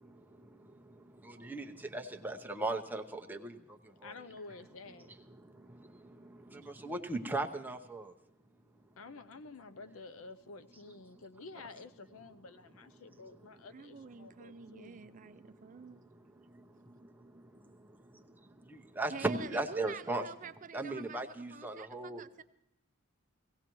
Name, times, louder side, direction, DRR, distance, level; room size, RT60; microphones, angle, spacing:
voice 1, 0.0-4.2 5.0-8.1 11.1-11.2 13.3-13.6 14.4-20.3 20.7-22.2, right 2 dB, 10° right, 0.8 m, -40 dB
voice 2, 4.0-5.1 9.0-15.0, left 3 dB, 70° left, 0.6 m, -50 dB
voice 3, 13.7-16.1 19.1-22.4, right 5 dB, 40° right, 0.5 m, -48 dB
18.0 x 16.5 x 3.0 m
head